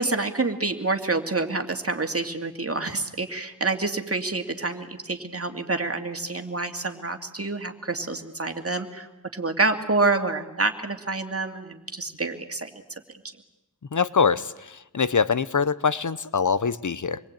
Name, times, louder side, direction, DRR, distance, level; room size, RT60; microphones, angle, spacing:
voice 1, 0.0-9.1 9.3-12.7, right 3 dB, 45° right, 6 dB, 2.4 m, -27 dB
voice 2, 13.9-17.2, left 5 dB, 70° left, 15 dB, 0.9 m, -24 dB
27.0 x 22.0 x 8.9 m, 0.92 s
wide cardioid pair, 60°, 32 cm